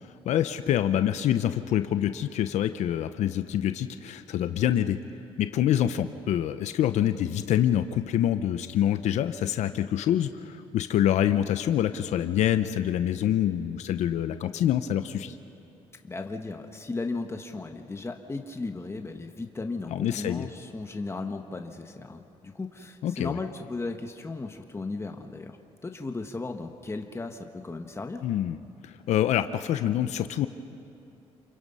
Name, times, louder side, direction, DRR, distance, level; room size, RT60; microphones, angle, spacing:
voice 1, 0.3-5.0 5.4-15.4 19.9-20.5 23.0-23.4 28.2-28.6 29.1-30.5, left 11 dB, 80° left, 10 dB, 0.8 m, -26 dB
voice 2, 16.0-25.6 25.8-28.2, left 3 dB, 20° left, 4 dB, 1.4 m, -36 dB
29.0 x 23.0 x 5.6 m, 2.6 s
cardioid pair, 75°, 12 cm